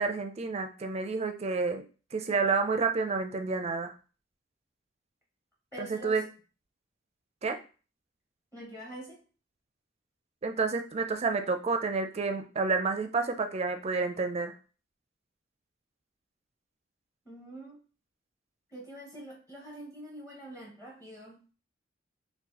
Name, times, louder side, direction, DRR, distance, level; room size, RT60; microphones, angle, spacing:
voice 1, 0.0-1.8 2.1-3.9 5.8-6.2 7.4-7.6 10.4-14.5, right 4 dB, 35° right, 7 dB, 0.4 m, -29 dB
voice 2, 5.7-6.3 8.5-9.2 17.3-17.8 18.7-21.4, right 1 dB, 10° left, -3 dB, 0.7 m, -45 dB
3.8 x 2.4 x 2.9 m, 0.36 s
head